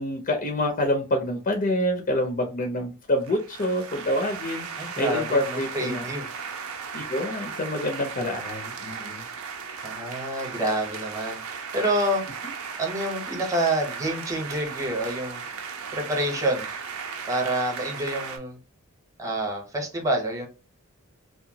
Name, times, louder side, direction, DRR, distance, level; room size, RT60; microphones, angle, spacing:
voice 1, 0.0-6.1 6.9-9.2, left 1 dB, 40° left, 4 dB, 0.4 m, -27 dB
sound 1, 3.2-18.4, right 6 dB, 80° right, 0.5 m, -36 dB
voice 2, 4.8-6.3 9.8-12.2 12.8-15.4 15.9-16.7 17.3-18.6 19.2-20.5, right 1 dB, 15° right, 1 dB, 0.7 m, -28 dB
2.8 x 2.2 x 2.7 m, 0.31 s
head